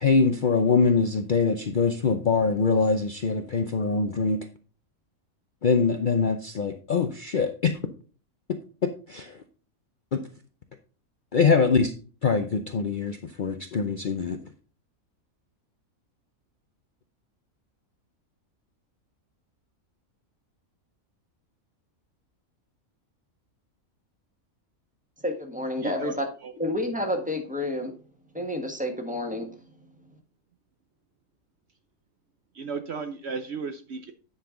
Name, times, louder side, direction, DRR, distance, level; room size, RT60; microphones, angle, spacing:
voice 1, 0.0-4.4 5.6-7.8 8.5-9.4 10.1-10.2 11.3-11.9 12.2-14.4, left 5 dB, 50° left, 6 dB, 0.6 m, -23 dB
voice 2, 25.2-26.3 26.6-27.9 28.3-29.5, left 1 dB, 5° right, 4 dB, 1.4 m, -29 dB
voice 3, 25.8-26.1 26.4-26.5 32.5-34.1, right 5 dB, 60° right, 8 dB, 0.9 m, -34 dB
9.9 x 5.6 x 3.8 m, 0.38 s
omnidirectional pair, 1.5 m